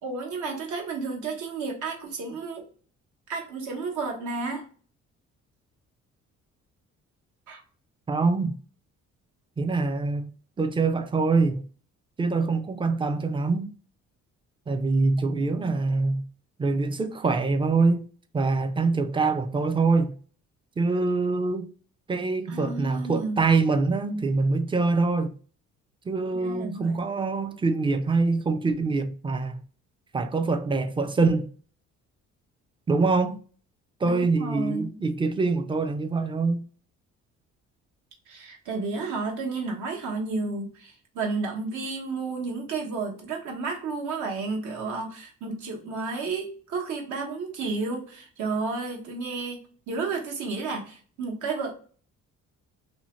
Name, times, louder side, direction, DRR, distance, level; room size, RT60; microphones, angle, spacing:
voice 1, 0.0-2.6 3.3-4.6 7.5-7.6 22.5-23.4 26.3-27.0 34.0-34.9 38.3-51.7, right 4 dB, 80° right, 1.0 m, -32 dB
voice 2, 8.1-8.6 9.6-10.3 10.6-11.7 12.2-13.7 14.7-16.2 16.6-18.1 18.3-20.2 20.8-21.7 22.1-25.4 26.1-29.6 30.1-31.5 32.9-33.4 34.0-36.6, right 3 dB, 20° right, 0.3 m, -24 dB
2.7 x 2.0 x 3.0 m
cardioid pair, 90°, 30 cm